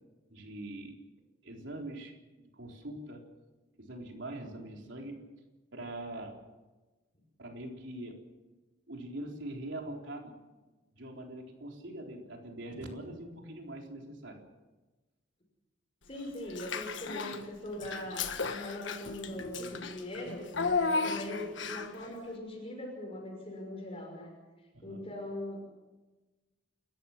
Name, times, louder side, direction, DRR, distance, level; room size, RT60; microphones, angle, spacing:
voice 1, 0.3-1.0 1.4-3.2 3.8-5.3 5.7-6.4 7.4-8.2 8.9-10.3 10.9-14.4 24.7-25.0, right 1 dB, 70° right, 1 dB, 4.0 m, -43 dB
voice 2, 16.1-24.3 24.8-25.6, left 1 dB, 30° left, 0 dB, 5.7 m, -41 dB
Child speech kid speaking / Bathtub (filling or washing), 16.5-17.4 17.8-22.0, left 4 dB, 70° left, 1.5 m, -34 dB
29.5 x 14.0 x 7.5 m, 1.2 s
head